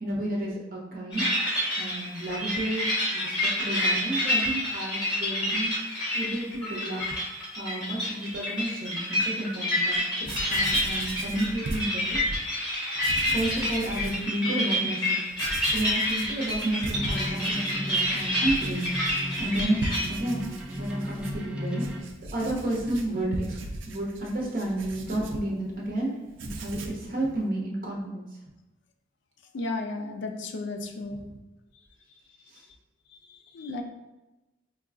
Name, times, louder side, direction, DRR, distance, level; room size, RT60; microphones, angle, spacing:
voice 1, 0.0-2.9 3.1-5.7 6.1-7.0 7.6-12.2 13.2-15.2 15.7-19.8 20.1-20.4 20.8-21.8 22.3-23.6 23.9-26.1 26.4-28.3 31.1-31.3 32.5-32.6, right 1 dB, 50° right, -2 dB, 0.9 m, -31 dB
sound 1, 1.1-20.1, left 1 dB, 25° left, 1.3 m, -28 dB
Writing, 9.9-10.0 10.2-12.4 12.9-14.2 14.7-14.8 15.3-26.0 26.3-27.1, right 2 dB, 75° right, 0.4 m, -39 dB
sound 2, 16.9-22.0, equal, 5° right, 0.4 m, -35 dB
voice 2, 29.5-31.2 33.5-33.8, left 3 dB, 65° left, 5 dB, 0.4 m, -33 dB
4.7 x 2.3 x 2.4 m, 1.0 s
head